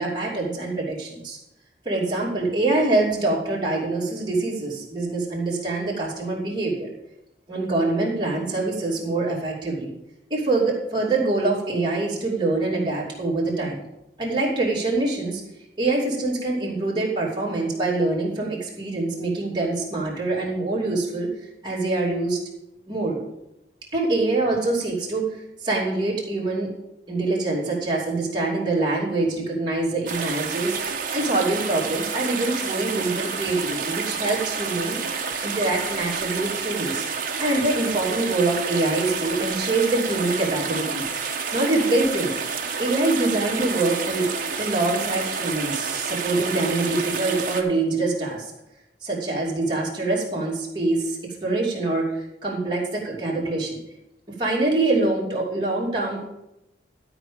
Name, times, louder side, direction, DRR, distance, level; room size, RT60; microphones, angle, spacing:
voice 1, 0.0-1.4 1.8-6.9 7.5-9.9 10.3-13.8 14.2-15.4 15.8-21.3 21.6-22.4 22.9-23.2 23.9-25.2 25.6-26.7 27.1-30.8 31.1-35.0 35.4-37.1 37.4-41.1 41.5-42.3 42.8-44.3 44.6-48.5 49.0-53.8 54.4-56.2, right 2 dB, 25° right, -5 dB, 2.7 m, -24 dB
sound 1, 30.1-47.6, right 5 dB, 50° right, 1.2 m, -29 dB
12.0 x 5.0 x 6.9 m, 0.88 s
head